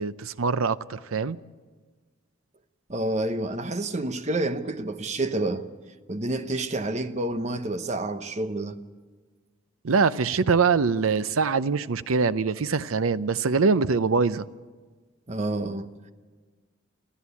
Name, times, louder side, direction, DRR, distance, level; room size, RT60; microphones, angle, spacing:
voice 1, 0.0-1.4 9.8-14.5, right 5 dB, 85° right, 0.6 m, -23 dB
voice 2, 2.9-5.6 6.1-8.8 15.3-15.9, right 2 dB, 35° right, 0.9 m, -29 dB
25.5 x 15.0 x 8.3 m
head